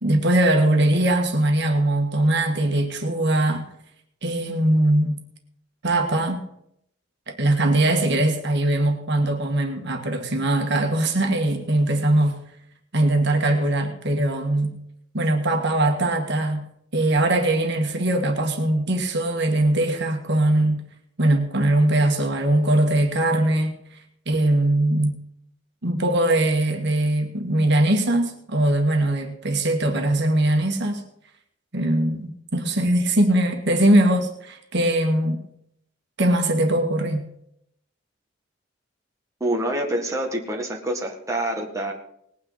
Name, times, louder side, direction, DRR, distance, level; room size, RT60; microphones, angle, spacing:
voice 1, 0.0-3.6 4.2-5.2 5.8-6.5 7.3-12.4 12.9-14.8 15.1-16.6 16.9-20.8 21.2-23.8 24.3-25.2 25.8-31.0 31.7-35.4 36.2-37.2, right 1 dB, 65° right, 4 dB, 1.9 m, -21 dB
voice 2, 39.4-41.9, right 1 dB, 15° right, 0 dB, 1.8 m, -26 dB
19.5 x 9.4 x 4.1 m, 0.72 s
head